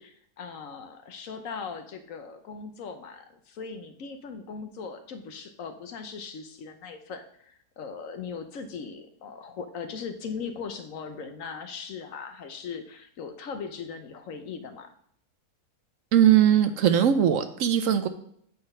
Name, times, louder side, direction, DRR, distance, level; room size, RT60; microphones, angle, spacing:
voice 1, 0.0-14.9, left 5 dB, 60° left, 8 dB, 1.0 m, -39 dB
voice 2, 16.1-18.1, right 10 dB, 65° right, 9 dB, 0.9 m, -20 dB
8.8 x 3.9 x 5.4 m, 0.67 s
omnidirectional pair, 1.7 m